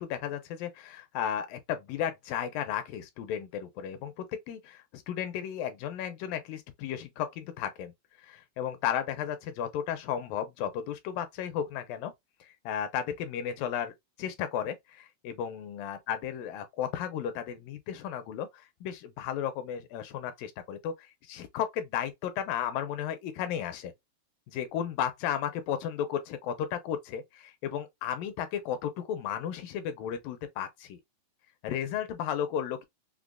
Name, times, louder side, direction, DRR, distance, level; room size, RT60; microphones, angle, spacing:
voice 1, 0.0-7.9 8.2-12.1 12.4-23.9 24.5-31.0 31.6-32.9, left 9 dB, 80° left, 2.2 m, -34 dB
6.0 x 2.1 x 2.3 m
omnidirectional pair, 4.3 m